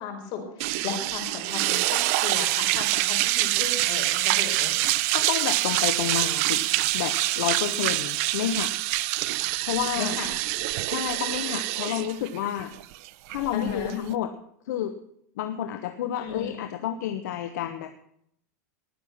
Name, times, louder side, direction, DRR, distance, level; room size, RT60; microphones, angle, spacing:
voice 1, 0.0-4.7 10.0-10.3 11.9-12.0 13.5-14.0 16.2-16.5, left 6 dB, 50° left, 2 dB, 5.0 m, -35 dB
sound 1, 0.6-14.1, right 18 dB, 60° right, 0.7 m, -26 dB
voice 2, 5.1-6.7 6.9-8.7 9.6-10.2 10.9-12.7 13.3-14.3 14.6-15.0 15.4-17.9, left 10 dB, 80° left, 8 dB, 1.2 m, -30 dB
19.5 x 6.9 x 6.0 m, 0.69 s
supercardioid pair, 130°, 9 cm